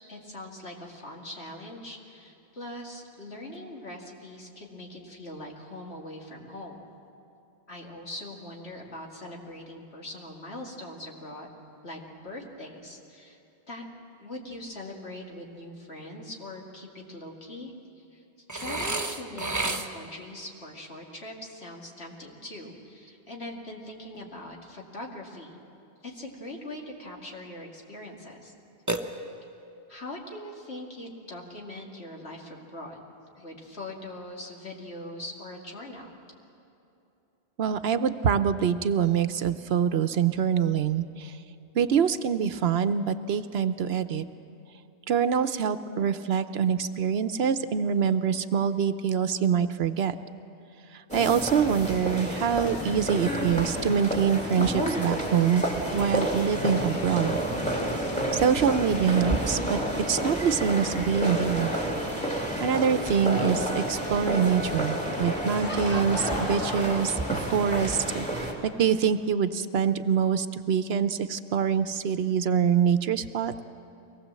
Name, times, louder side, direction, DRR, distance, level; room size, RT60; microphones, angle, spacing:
voice 1, 0.1-6.8 7.7-11.5 11.8-13.4 13.7-13.8 14.2-17.7 18.1-18.2 18.5-25.6 26.0-28.5 29.9-33.0 33.4-36.0, left 1 dB, 75° left, -1 dB, 2.7 m, -41 dB
Burping eructation, 18.5-20.2 28.9-29.7, right 2 dB, 20° right, 0.9 m, -31 dB
voice 2, 37.6-41.4 41.7-44.2 45.1-50.1 50.9-55.6 55.9-57.4 58.3-59.8 60.1-61.7 62.3-68.3 68.6-73.6, right 7 dB, 75° right, 11 dB, 0.9 m, -25 dB
sound 1, 51.1-68.5, right 1 dB, 5° left, 2.7 m, -30 dB
Laughter / Crowd, 65.2-68.0, left 1 dB, 45° left, 2.2 m, -36 dB
23.5 x 19.0 x 7.5 m, 2.8 s
omnidirectional pair, 1.1 m